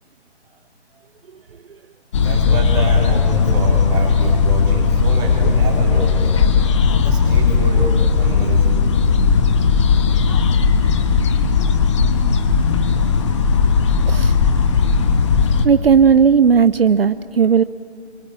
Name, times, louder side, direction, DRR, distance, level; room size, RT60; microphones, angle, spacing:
sound 1, 2.1-15.7, left 5 dB, 25° left, 1.3 m, -16 dB
voice 1, 2.2-6.3 6.9-8.8, right 2 dB, 10° right, -1 dB, 3.8 m, -26 dB
voice 2, 15.6-17.6, right 6 dB, 60° right, 14 dB, 0.6 m, -14 dB
29.0 x 23.0 x 8.8 m, 2.3 s
figure-of-eight pair, 150°, 34 cm